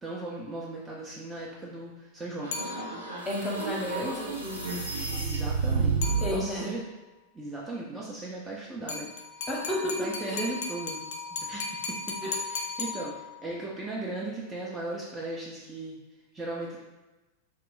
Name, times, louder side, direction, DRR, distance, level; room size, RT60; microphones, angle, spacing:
voice 1, 0.0-2.5 5.1-6.8 7.3-9.1 9.8-11.0 11.3-12.2 12.4-16.0 16.3-16.8, right 2 dB, 15° right, -5 dB, 0.5 m, -37 dB
sound 1, 2.4-6.5, right 4 dB, 80° right, 0.5 m, -30 dB
sound 2, 2.5-3.3 6.0-6.8 8.9-13.6, left 4 dB, 55° left, 0.4 m, -36 dB
voice 2, 3.3-4.8 6.2-6.7 9.5-9.9 10.2-10.5 12.2-12.4, left 1 dB, 15° left, -4 dB, 0.8 m, -32 dB
2.3 x 2.1 x 3.7 m, 1.1 s
figure-of-eight pair, 90°, 0 cm